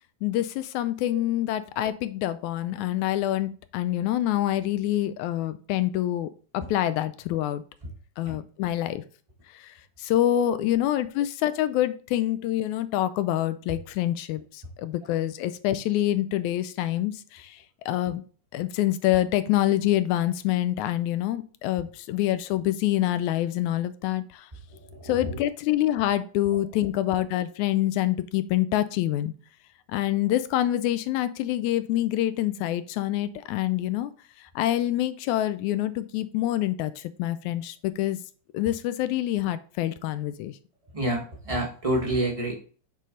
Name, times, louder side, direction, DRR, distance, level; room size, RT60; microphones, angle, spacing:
voice 1, 0.2-7.6 8.2-9.0 9.5-18.2 18.5-24.5 25.0-29.3 29.9-34.1 34.4-38.2 38.5-40.6, left 13 dB, 80° left, 13 dB, 1.9 m, -26 dB
voice 2, 24.8-25.4 40.9-42.5, right 1 dB, 30° right, -1 dB, 0.6 m, -28 dB
8.3 x 4.1 x 3.8 m, 0.40 s
omnidirectional pair, 3.4 m